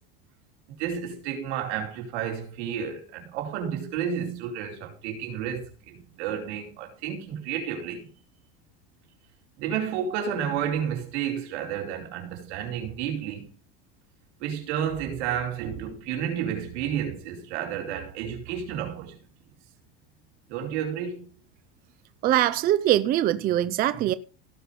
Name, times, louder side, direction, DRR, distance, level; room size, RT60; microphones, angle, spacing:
voice 1, 0.8-8.1 9.6-13.5 14.4-19.2 20.5-21.2, right 8 dB, 80° right, 4.7 m, -31 dB
voice 2, 22.2-24.1, right 13 dB, 25° right, 0.5 m, -22 dB
17.0 x 5.9 x 5.3 m
cardioid pair, 160°, 33 cm